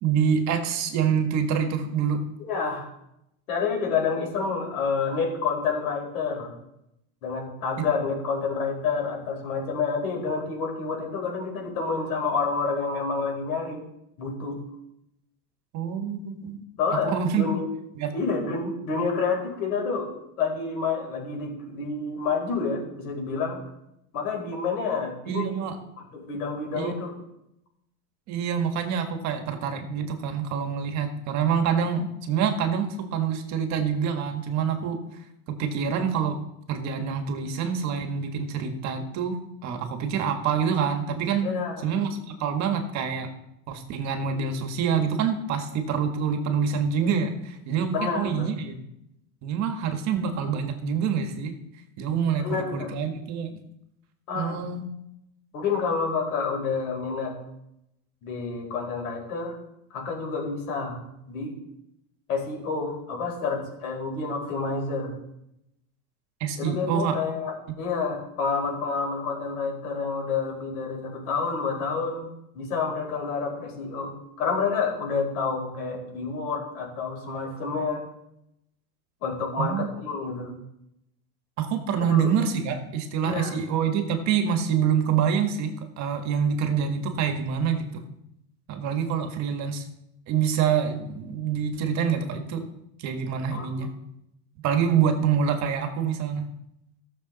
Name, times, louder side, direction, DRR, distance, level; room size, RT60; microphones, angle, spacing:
voice 1, 0.0-2.2 15.7-16.6 16.9-17.4 17.9-18.1 25.2-25.8 26.7-26.9 28.3-35.0 35.6-36.4 36.7-41.5 41.8-43.3 43.7-48.8 49.4-51.6 52.0-53.6 54.3-54.9 66.4-67.2 79.6-79.9 81.6-88.0 88.7-89.8 90.3-92.6 93.0-93.9 94.6-96.4, right 7 dB, 40° right, 6 dB, 1.6 m, -26 dB
voice 2, 2.4-2.9 3.5-6.5 7.2-13.8 14.2-14.6 16.8-17.7 18.1-20.1 20.4-23.6 24.1-25.6 26.1-27.1 41.4-41.9 47.9-48.5 52.4-52.9 54.3-54.6 55.5-57.3 58.2-59.5 59.9-61.0 61.3-61.5 62.3-65.1 66.6-78.0 79.2-80.5 82.0-82.3 83.2-83.5 93.5-93.9, left 5 dB, 80° left, 0 dB, 4.9 m, -29 dB
17.0 x 6.8 x 4.1 m, 0.82 s
supercardioid pair, 140°, 43 cm